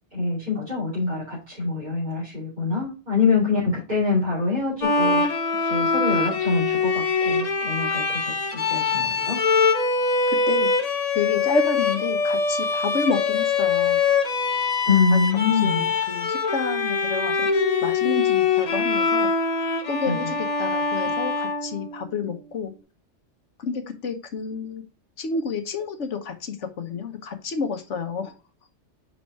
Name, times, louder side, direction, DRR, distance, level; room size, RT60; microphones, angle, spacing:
voice 1, 0.1-5.2 5.6-9.4 14.9-15.8 20.0-20.2, left 4 dB, 35° right, -8 dB, 3.0 m, -25 dB
Bowed string instrument, 4.8-22.2, left 4 dB, 35° left, 0.8 m, -23 dB
voice 2, 10.3-10.7 11.1-14.0 15.1-15.3 15.6-17.5 17.8-19.3 19.9-22.7 23.6-24.8 25.2-28.3, left 4 dB, 70° left, 8 dB, 1.3 m, -29 dB
5.3 x 4.9 x 4.6 m, 0.32 s
omnidirectional pair, 1.3 m